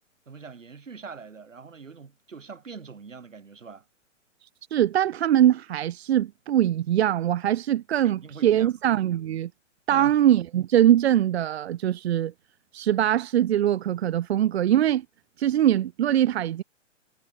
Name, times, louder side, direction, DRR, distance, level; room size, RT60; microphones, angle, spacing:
voice 1, 0.3-3.8 8.0-8.8 9.9-10.2, right 5 dB, 80° right, 7.2 m, -43 dB
voice 2, 4.7-9.5 9.9-12.3 12.7-15.0 15.4-16.6, right 11 dB, 55° right, 2.4 m, -22 dB
figure-of-eight pair, 115°, 38 cm